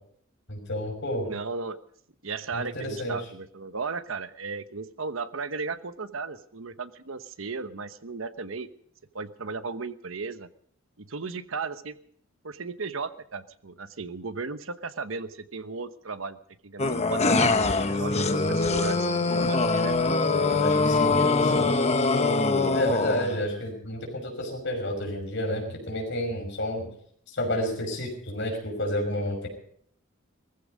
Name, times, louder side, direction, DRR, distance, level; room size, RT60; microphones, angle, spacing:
voice 1, 0.5-1.3 2.5-3.2 18.1-18.6 20.6-21.7 22.7-26.9 27.3-29.5, equal, 65° left, 3 dB, 5.9 m, -31 dB
voice 2, 1.3-1.8 2.2-8.7 9.1-10.5 11.0-12.0 12.4-16.4 16.6-17.6 17.9-20.0, right 4 dB, 75° right, 11 dB, 1.1 m, -35 dB
sound 1, 16.8-23.4, left 3 dB, 35° left, 1.1 m, -23 dB
19.0 x 15.0 x 5.1 m, 0.64 s
head